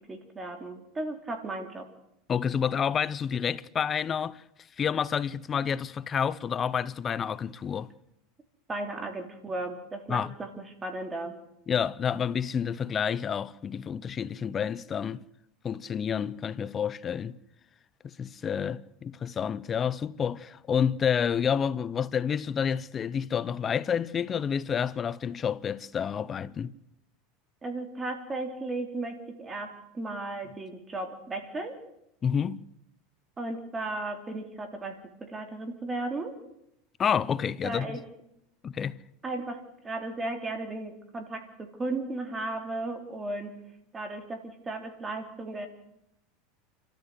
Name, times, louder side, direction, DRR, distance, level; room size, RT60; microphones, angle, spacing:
voice 1, 0.0-1.9 8.7-11.3 27.6-31.8 33.4-36.3 37.6-38.0 39.2-43.5 43.9-45.7, right 2 dB, 20° right, 3.5 m, -35 dB
voice 2, 2.3-4.4 4.8-7.9 10.1-10.3 11.7-15.2 15.6-17.4 18.0-26.7 32.2-32.6 37.0-38.0 38.6-39.0, left 7 dB, 30° left, 0.7 m, -29 dB
29.0 x 13.5 x 8.0 m
supercardioid pair, 115°, 0 cm